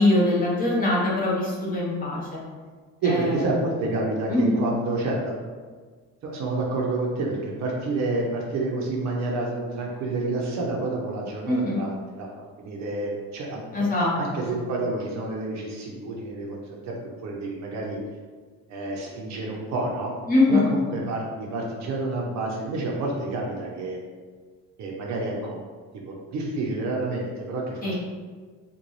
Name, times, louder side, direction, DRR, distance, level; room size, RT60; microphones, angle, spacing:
voice 1, 0.0-2.4 3.0-3.4 4.3-4.6 11.5-11.8 13.7-14.1 14.4-14.6 20.3-20.7 27.8-27.9, left 2 dB, 25° left, -6 dB, 0.8 m, -22 dB
voice 2, 3.0-5.5 6.2-13.6 14.2-16.6 16.8-16.9 17.2-18.0 18.7-20.1 20.5-24.0 24.8-25.6 25.9-27.9, right 2 dB, 50° right, -2 dB, 0.6 m, -29 dB
3.9 x 2.2 x 3.1 m, 1.5 s
cardioid pair, 165°, 37 cm